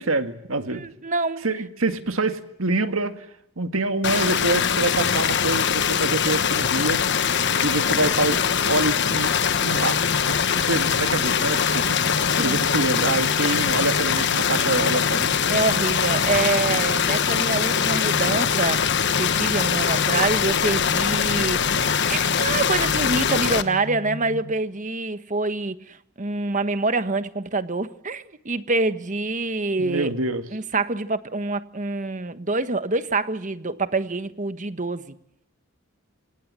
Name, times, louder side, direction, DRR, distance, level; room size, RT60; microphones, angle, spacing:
voice 1, 0.0-0.9 1.4-3.3 3.6-7.0 7.6-9.3 9.6-10.0 10.3-12.0 12.4-15.4 16.9-17.0 29.8-30.4, right 2 dB, 80° right, 2.0 m, -26 dB
voice 2, 0.7-1.4 12.3-12.6 15.5-21.8 22.1-30.1 30.5-35.1, right 3 dB, 40° right, 1.3 m, -26 dB
sound 1, 4.0-23.6, left 7 dB, 55° left, 1.2 m, -22 dB
sound 2, 9.5-24.5, left 1 dB, 40° left, 2.6 m, -37 dB
27.0 x 19.0 x 7.6 m
head